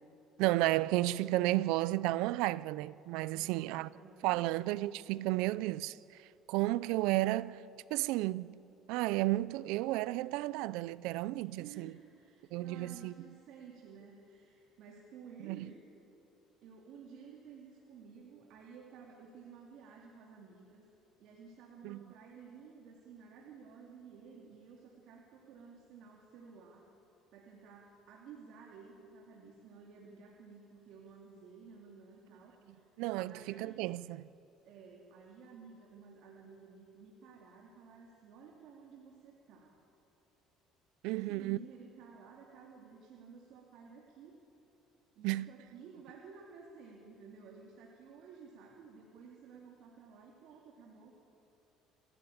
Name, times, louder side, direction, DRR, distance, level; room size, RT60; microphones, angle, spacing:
voice 1, 0.4-3.9 4.2-6.0 6.5-7.6 7.9-8.6 8.9-11.9 12.5-13.1 15.4-15.7 21.8-22.0 33.0-34.3 41.0-41.6 45.2-45.5, right 18 dB, 85° right, 0.5 m, -32 dB
voice 2, 3.3-4.6 11.5-15.8 16.6-20.8 21.2-26.9 27.3-32.9 33.2-33.9 34.6-39.7 41.1-44.4 45.1-51.4, right 5 dB, 60° right, 2.8 m, -54 dB
29.0 x 13.0 x 8.8 m
cardioid pair, 160°, 0 cm